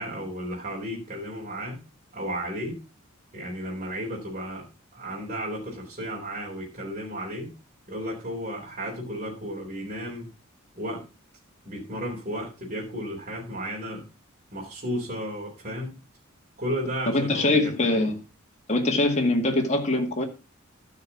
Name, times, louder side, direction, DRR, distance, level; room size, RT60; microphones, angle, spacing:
voice 1, 0.0-1.8 2.1-2.8 3.3-7.5 7.9-10.3 10.8-11.0 11.6-14.0 14.5-16.0 16.6-18.1, equal, 35° right, -4 dB, 3.9 m, -33 dB
voice 2, 17.1-18.2 18.7-20.2, left 2 dB, 35° left, 1 dB, 2.1 m, -23 dB
12.5 x 5.8 x 5.8 m, 0.30 s
head